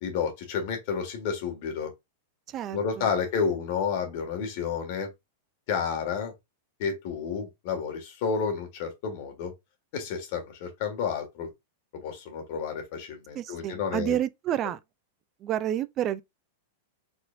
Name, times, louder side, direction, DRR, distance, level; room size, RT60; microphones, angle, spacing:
voice 1, 0.0-1.9 2.7-5.1 5.7-6.3 6.8-9.5 9.9-11.5 12.0-14.2, left 6 dB, 45° left, 1.8 m, -30 dB
voice 2, 2.5-3.1 13.3-14.8 15.4-16.2, right 11 dB, 25° right, 0.4 m, -29 dB
4.3 x 4.3 x 2.6 m
supercardioid pair, 165°, 0 cm